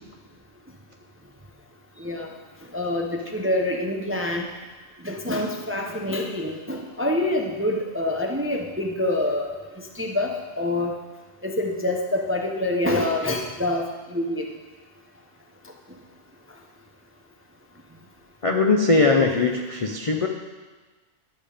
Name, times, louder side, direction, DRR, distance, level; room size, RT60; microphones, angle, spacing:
voice 1, 2.0-2.3 2.7-4.5 5.0-9.5 10.0-10.9 11.4-14.4, left 1 dB, 15° right, 1 dB, 0.5 m, -26 dB
voice 2, 18.4-20.3, left 3 dB, 40° left, 2 dB, 0.4 m, -20 dB
11.5 x 7.1 x 5.0 m, 1.3 s
omnidirectional pair, 1.4 m